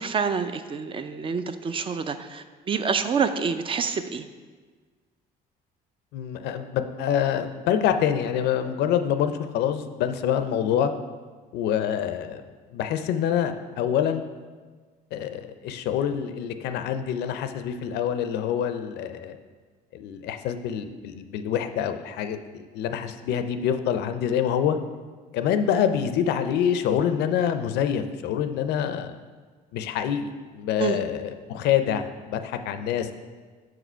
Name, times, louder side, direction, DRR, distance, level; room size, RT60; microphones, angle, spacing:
voice 1, 0.0-4.2 30.8-31.0, right 5 dB, 30° right, 10 dB, 0.4 m, -27 dB
voice 2, 6.1-10.9 11.5-12.4 12.7-14.2 15.1-19.4 19.9-24.8 25.3-29.1 29.7-33.1, left 9 dB, 80° left, 9 dB, 0.5 m, -26 dB
6.1 x 4.9 x 4.5 m, 1.5 s
cardioid pair, 110°, 17 cm